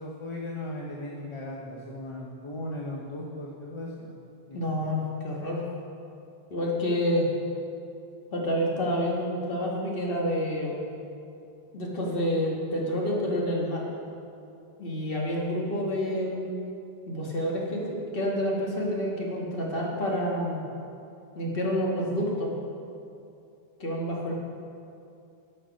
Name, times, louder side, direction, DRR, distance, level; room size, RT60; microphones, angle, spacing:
voice 1, 0.0-4.2 4.5-4.7, left 1 dB, 30° left, -2 dB, 0.8 m, -37 dB
voice 2, 4.5-5.6 6.5-7.3 8.3-10.8 11.7-13.9 14.8-16.5 17.1-20.6 21.4-22.5 23.8-24.3, equal, 65° left, -3 dB, 1.7 m, -28 dB
12.0 x 5.6 x 5.2 m, 2.6 s
omnidirectional pair, 1.0 m